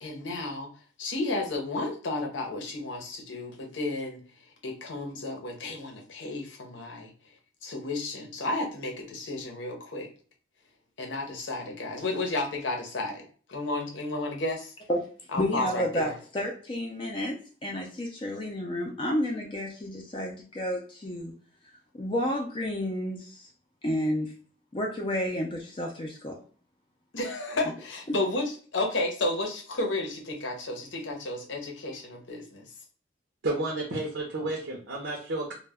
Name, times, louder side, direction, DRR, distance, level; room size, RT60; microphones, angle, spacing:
voice 1, 0.0-0.7 1.0-4.2 4.6-7.1 7.6-10.1 11.0-13.2 13.5-14.7 15.3-16.1 27.1-32.7, left 2 dB, 70° left, 2 dB, 0.7 m, -32 dB
voice 2, 15.4-21.3 21.9-23.5 23.8-24.3 24.7-26.4 28.1-28.2, equal, 25° left, 0 dB, 0.4 m, -31 dB
voice 3, 33.4-35.5, right 2 dB, 70° right, -1 dB, 0.6 m, -31 dB
2.1 x 2.1 x 3.4 m, 0.43 s
head